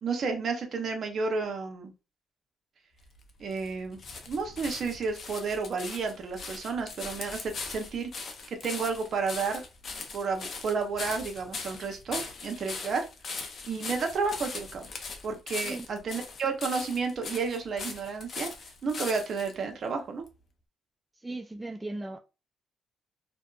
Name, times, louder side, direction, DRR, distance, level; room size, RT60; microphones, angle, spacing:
voice 1, 0.0-1.9 3.4-4.0 4.3-9.6 10.1-13.1 13.7-14.9 15.2-18.5 18.8-20.2, right 4 dB, 55° right, 0.7 m, -31 dB
sound 1, 3.0-19.5 20.3-20.4, left 4 dB, 50° left, 0.5 m, -40 dB
voice 2, 21.2-22.2, right 2 dB, 10° right, 0.3 m, -37 dB
2.6 x 2.2 x 2.3 m
cardioid pair, 90°, 0 cm